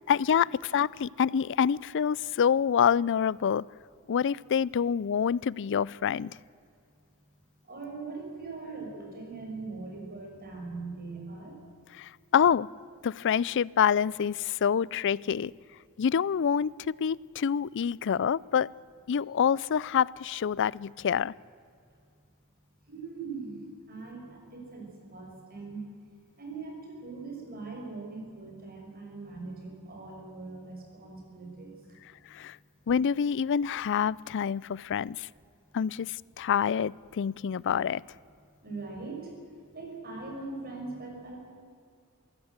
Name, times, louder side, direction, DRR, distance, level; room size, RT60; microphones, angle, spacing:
voice 1, 0.1-3.6 4.1-6.3 12.0-12.7 13.0-15.5 16.0-18.7 19.1-21.3 32.3-32.6 32.9-35.3 35.7-38.0, left 7 dB, 55° left, 24 dB, 0.4 m, -27 dB
voice 2, 7.6-11.6 22.9-23.6 23.9-25.8 26.4-32.0 38.6-39.3 39.7-41.4, right 3 dB, 45° right, 1 dB, 6.3 m, -41 dB
22.5 x 16.0 x 8.1 m, 2.3 s
head